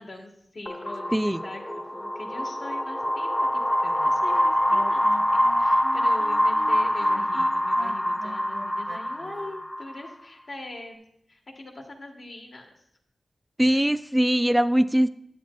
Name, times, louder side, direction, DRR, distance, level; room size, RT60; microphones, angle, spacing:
voice 1, 0.0-11.0 11.3-12.7 13.7-13.8, left 2 dB, 65° left, 1 dB, 1.3 m, -42 dB
sound 1, 0.7-10.1, left 1 dB, 20° left, 0.8 m, -25 dB
Wind instrument woodwind instrument, 4.0-9.6, right 2 dB, 75° right, 0.7 m, -42 dB
voice 2, 13.6-15.1, equal, 10° right, 13 dB, 0.3 m, -21 dB
10.0 x 8.1 x 2.3 m, 0.73 s
cardioid pair, 60°, 0 cm